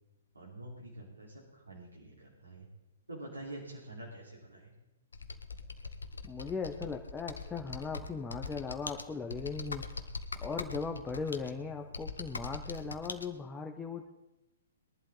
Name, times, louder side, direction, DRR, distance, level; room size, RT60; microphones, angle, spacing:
voice 1, 0.3-2.7 3.1-4.7, right 1 dB, 80° right, -5 dB, 3.9 m, -47 dB
Computer keyboard, 5.1-13.3, left 3 dB, 70° left, 1.0 m, -42 dB
voice 2, 6.2-9.9 10.4-14.1, left 5 dB, 10° left, 2 dB, 0.9 m, -38 dB
21.0 x 11.5 x 3.9 m, 0.96 s
figure-of-eight pair, 120°, 0 cm